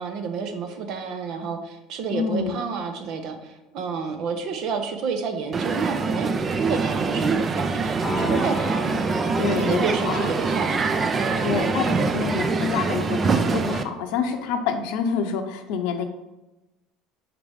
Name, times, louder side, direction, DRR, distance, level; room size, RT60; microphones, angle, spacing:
voice 1, 0.0-7.5 7.8-12.1, right 5 dB, 60° right, 6 dB, 0.9 m, -30 dB
voice 2, 2.1-2.5 9.4-9.8 10.1-10.3 11.4-16.0, left 6 dB, 70° left, 6 dB, 0.6 m, -27 dB
Crowd, 5.5-13.8, right 4 dB, 30° right, 0.5 m, -24 dB
Piano, 8.0-14.8, left 2 dB, 20° left, 0.8 m, -37 dB
5.9 x 4.9 x 3.5 m, 1.0 s
hypercardioid pair, 80°, 0 cm